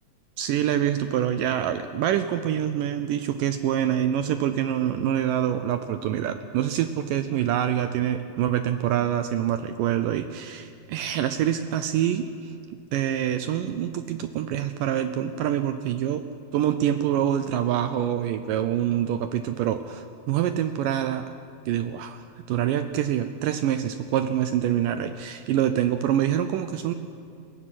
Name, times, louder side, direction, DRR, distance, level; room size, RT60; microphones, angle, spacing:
voice 1, 0.4-12.5 12.9-16.2 16.5-21.3 21.7-26.9, right 10 dB, 80° right, 10 dB, 2.0 m, -26 dB
21.0 x 16.0 x 9.7 m, 2.4 s
omnidirectional pair, 4.5 m